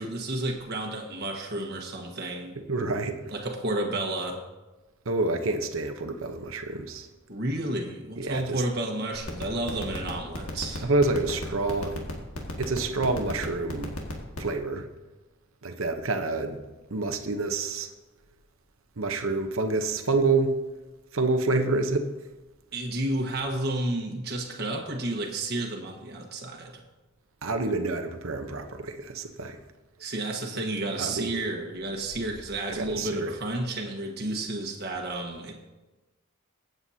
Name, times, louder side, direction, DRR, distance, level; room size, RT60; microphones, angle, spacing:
voice 1, 0.0-2.6 3.3-4.4 7.3-10.8 22.7-26.8 30.0-35.5, right 1 dB, 50° right, 1 dB, 1.3 m, -31 dB
voice 2, 2.7-3.1 5.1-7.1 8.2-8.6 10.8-12.0 12.6-14.0 14.4-14.9 15.6-16.6 16.9-17.9 19.0-20.5 21.1-22.1 27.4-29.6 31.0-31.4 32.7-33.3, right 3 dB, 70° right, 6 dB, 0.9 m, -27 dB
sound 1, 9.2-14.5, left 1 dB, 85° left, 2.0 m, -33 dB
23.0 x 7.9 x 2.8 m, 1.1 s
head